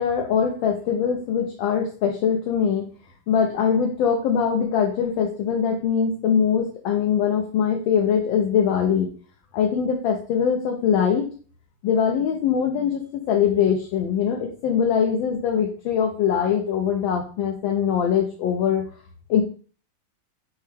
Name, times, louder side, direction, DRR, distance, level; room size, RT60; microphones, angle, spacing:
voice 1, 0.0-2.8 3.3-9.1 9.5-11.3 11.8-18.8 19.3-19.4, left 7 dB, 75° left, 1 dB, 1.4 m, -22 dB
6.5 x 2.2 x 3.3 m, 0.41 s
omnidirectional pair, 2.3 m